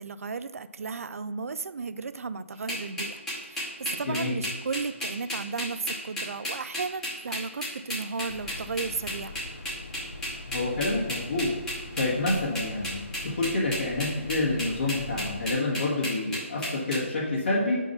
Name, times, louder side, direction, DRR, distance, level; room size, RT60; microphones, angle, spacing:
voice 1, 0.0-3.2 3.5-9.4, right 4 dB, 85° right, 13 dB, 0.4 m, -34 dB
sound 1, 2.7-17.0, equal, 5° left, 0.8 m, -33 dB
voice 2, 4.0-4.3 10.5-11.5 11.9-17.8, left 2 dB, 55° left, -6 dB, 1.6 m, -28 dB
sound 2, 8.3-15.5, left 2 dB, 90° left, 0.8 m, -42 dB
5.4 x 4.5 x 5.6 m, 1.4 s
hypercardioid pair, 180°, 8 cm